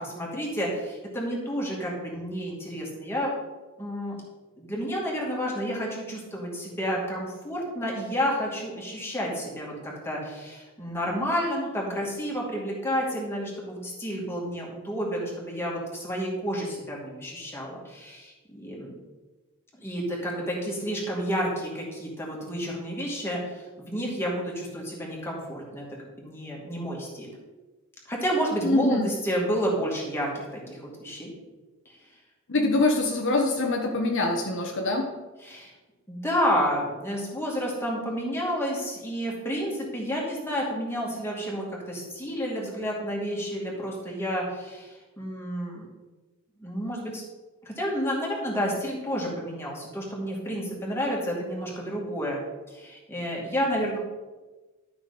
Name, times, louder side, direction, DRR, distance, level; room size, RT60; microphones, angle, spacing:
voice 1, 0.0-3.3 3.8-4.2 4.6-18.9 19.8-23.4 23.8-25.8 26.2-27.3 28.1-31.3 35.4-35.7 36.1-45.8 46.6-47.2 47.6-52.4 52.7-54.0, equal, 10° left, -3 dB, 2.4 m, -30 dB
voice 2, 28.6-29.1 32.5-35.1, left 2 dB, 60° left, 2 dB, 1.0 m, -24 dB
12.0 x 6.1 x 4.2 m, 1.2 s
head